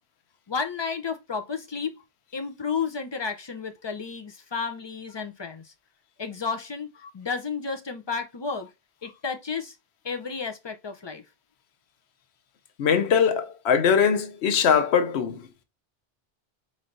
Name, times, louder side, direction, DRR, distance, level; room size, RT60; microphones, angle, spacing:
voice 1, 0.5-2.0 2.3-5.7 6.2-6.9 7.1-8.7 9.0-9.8 10.0-11.2, left 5 dB, 35° left, 0.5 m, -32 dB
voice 2, 12.8-15.5, left 7 dB, 90° left, 0.9 m, -21 dB
4.2 x 3.2 x 2.5 m
omnidirectional pair, 1.1 m